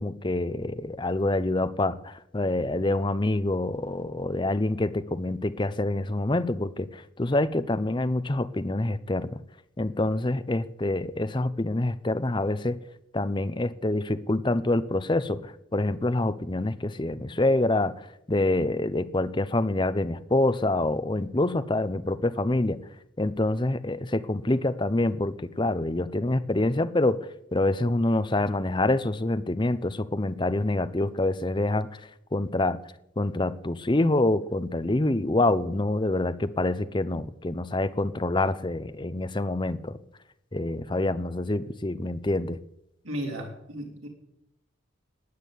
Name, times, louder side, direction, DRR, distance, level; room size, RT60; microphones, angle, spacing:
voice 1, 0.0-9.4 9.8-12.8 13.1-22.8 23.2-32.0 32.3-32.8 33.2-40.0 40.5-42.6, left 2 dB, 25° left, 12 dB, 0.7 m, -26 dB
voice 2, 43.0-44.1, equal, 85° right, 0 dB, 4.5 m, -34 dB
16.0 x 9.9 x 8.4 m, 0.83 s
head